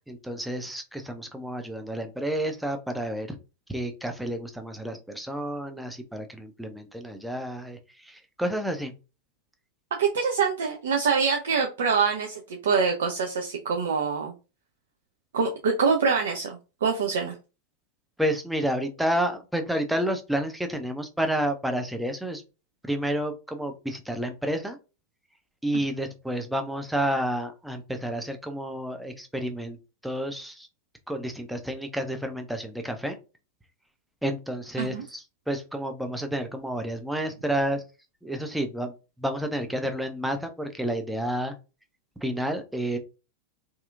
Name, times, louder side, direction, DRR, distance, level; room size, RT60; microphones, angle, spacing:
voice 1, 0.1-3.4 3.7-8.9 18.2-22.4 22.8-24.8 25.6-29.8 30.0-30.7 31.1-33.2 34.2-37.8 38.2-38.9 39.2-41.6 42.2-43.0, right 1 dB, 5° right, 5 dB, 0.5 m, -30 dB
voice 2, 10.0-14.3 15.3-17.3 25.7-25.8 34.8-35.0, right 5 dB, 60° right, 2 dB, 0.4 m, -25 dB
2.7 x 2.4 x 2.4 m, 0.31 s
figure-of-eight pair, 90°, 0 cm